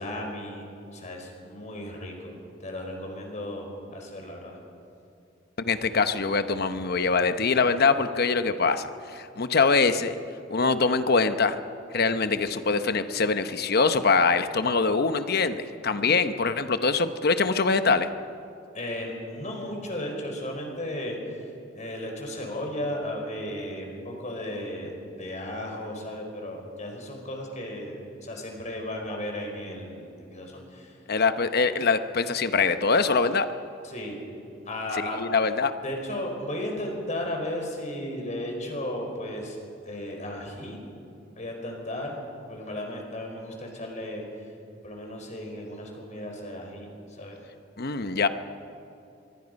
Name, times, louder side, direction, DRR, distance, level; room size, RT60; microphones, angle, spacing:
voice 1, 0.0-2.3 2.6-4.6 18.7-21.4 21.7-30.9 33.8-34.1 34.6-35.2 35.8-39.6 39.9-40.8 41.4-42.2 42.5-44.2 44.8-46.9 47.2-47.4, left 1 dB, 40° left, 2 dB, 4.8 m, -35 dB
voice 2, 5.6-10.1 10.5-11.6 11.9-18.1 31.1-33.5 35.2-35.7 47.8-48.3, left 4 dB, 55° left, 10 dB, 0.9 m, -23 dB
25.0 x 23.5 x 5.3 m, 2.6 s
head